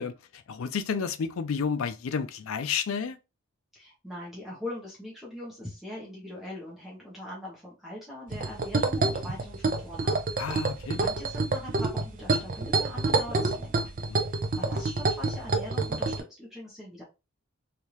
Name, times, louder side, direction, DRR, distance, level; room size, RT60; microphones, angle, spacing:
voice 1, 0.0-3.2 10.4-11.0 14.1-14.2, left 6 dB, 70° left, 0.4 m, -31 dB
voice 2, 3.7-10.2 10.9-13.9 14.6-17.0, left 1 dB, ahead, 1.1 m, -41 dB
sound 1, 8.3-16.2, right 3 dB, 40° right, 0.5 m, -28 dB
3.3 x 2.7 x 3.0 m
head